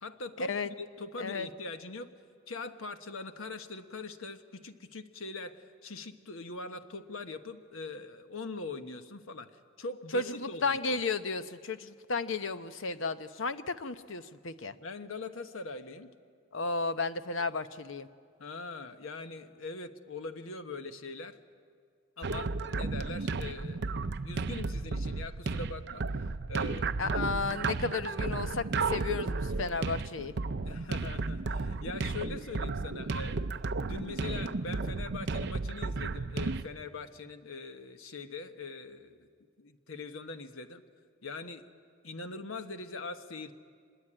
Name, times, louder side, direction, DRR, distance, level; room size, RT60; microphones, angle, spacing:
voice 1, 0.0-2.1 2.5-10.8 14.7-16.1 17.4-17.5 18.4-21.4 22.2-26.2 26.5-27.1 30.6-33.5 33.8-39.3 39.6-40.8 41.2-41.6 42.0-43.5, left 3 dB, 80° left, 8 dB, 1.2 m, -42 dB
voice 2, 1.2-1.5 10.1-14.7 16.5-18.1 27.0-30.3, left 4 dB, 65° left, 11 dB, 0.8 m, -33 dB
sound 1, 22.2-36.6, right 3 dB, 55° right, 0.6 m, -33 dB
25.0 x 21.5 x 8.8 m, 2.1 s
head